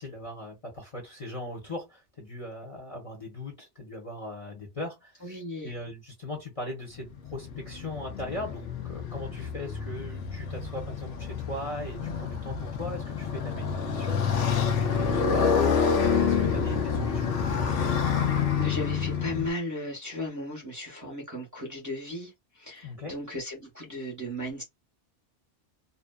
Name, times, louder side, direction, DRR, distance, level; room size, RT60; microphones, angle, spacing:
voice 1, 0.0-5.4 5.6-14.5 14.8-15.8 16.0-17.7 22.8-23.1, left 1 dB, 30° left, 0.8 m, -39 dB
voice 2, 5.2-5.7 18.6-24.6, left 1 dB, 20° right, 0.8 m, -36 dB
Motorcycle, 7.0-19.5, left 6 dB, 90° left, 0.9 m, -28 dB
2.6 x 2.1 x 2.2 m
omnidirectional pair, 1.2 m